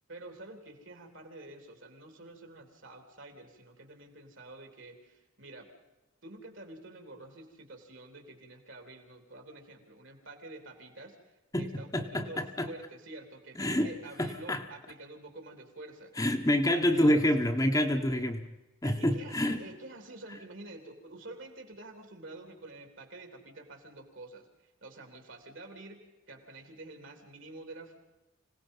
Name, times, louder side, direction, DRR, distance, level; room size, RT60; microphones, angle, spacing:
voice 1, 0.1-5.7 6.2-16.1 16.5-17.3 18.8-26.0 26.3-28.0, right 2 dB, 60° right, 5 dB, 3.4 m, -48 dB
voice 2, 11.5-12.7 13.6-13.9 14.2-14.6 16.2-18.5 18.8-19.6, left 1 dB, 15° left, 4 dB, 1.2 m, -27 dB
26.0 x 18.0 x 5.5 m, 1.0 s
head